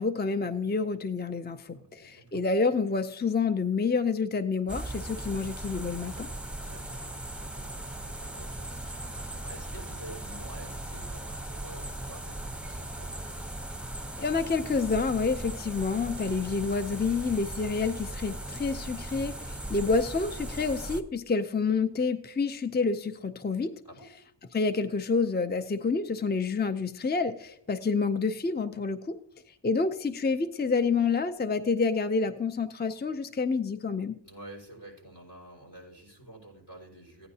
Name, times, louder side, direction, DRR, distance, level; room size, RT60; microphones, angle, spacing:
voice 1, 0.0-6.3 14.2-23.7 24.5-29.2 29.5-34.2, left 4 dB, 25° left, 9 dB, 0.5 m, -28 dB
voice 2, 1.7-2.5 6.5-13.1 23.8-24.1 34.2-37.3, right 1 dB, 70° left, -3 dB, 5.4 m, -49 dB
sound 1, 4.7-21.0, right 1 dB, 5° right, 0.9 m, -38 dB
15.5 x 9.6 x 2.8 m, 0.68 s
wide cardioid pair, 45°, 43 cm